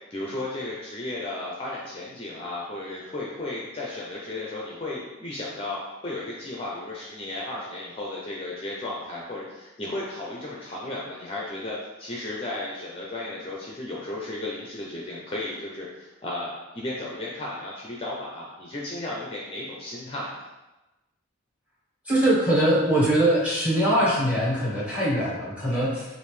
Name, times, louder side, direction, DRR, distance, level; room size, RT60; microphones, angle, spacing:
voice 1, 0.1-20.5, left 2 dB, 25° left, -4 dB, 0.5 m, -34 dB
voice 2, 22.1-26.1, right 1 dB, 5° right, -7 dB, 1.1 m, -22 dB
5.2 x 2.5 x 3.2 m, 1.0 s
head